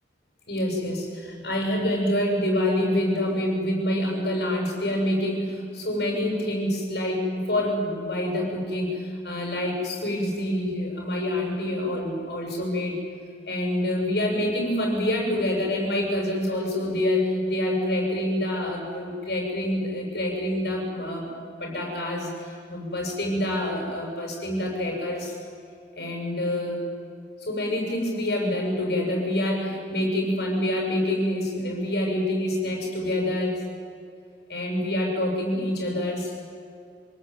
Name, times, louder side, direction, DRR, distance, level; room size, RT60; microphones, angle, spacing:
voice 1, 0.4-13.0 13.4-21.3 21.6-25.3 26.0-26.8 27.4-33.6 34.5-36.3, left 1 dB, 60° left, 1 dB, 7.9 m, -26 dB
26.0 x 18.0 x 9.6 m, 2.4 s
head